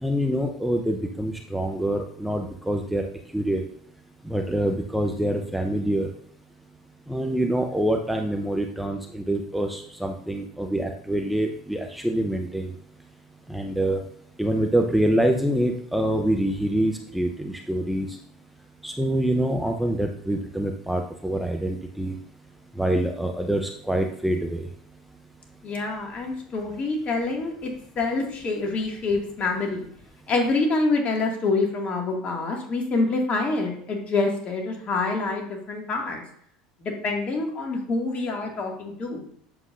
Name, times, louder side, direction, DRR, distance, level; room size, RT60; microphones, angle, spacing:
voice 1, 0.0-3.0 3.3-3.6 4.2-6.1 7.1-12.7 13.5-14.0 14.4-18.1 18.8-22.1 22.8-24.7, right 1 dB, ahead, 3 dB, 0.8 m, -25 dB
voice 2, 25.6-27.7 28.0-29.9 30.3-36.2 36.8-39.2, left 3 dB, 40° left, 1 dB, 2.2 m, -26 dB
8.5 x 7.2 x 2.6 m, 0.66 s
hypercardioid pair, 75°, 3 cm